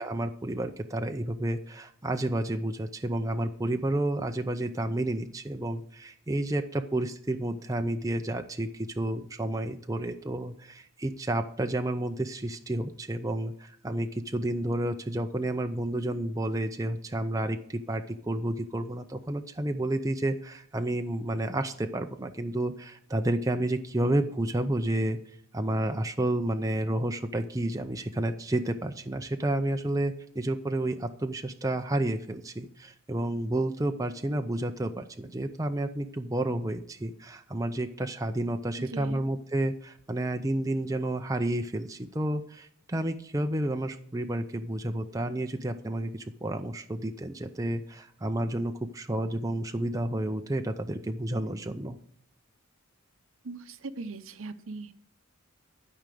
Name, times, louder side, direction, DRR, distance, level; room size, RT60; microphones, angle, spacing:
voice 1, 0.0-25.2 25.5-52.0, right 1 dB, 15° right, 6 dB, 0.5 m, -30 dB
voice 2, 38.8-39.2 53.4-54.9, right 3 dB, 70° right, 11 dB, 0.7 m, -40 dB
12.5 x 5.0 x 7.6 m, 0.63 s
head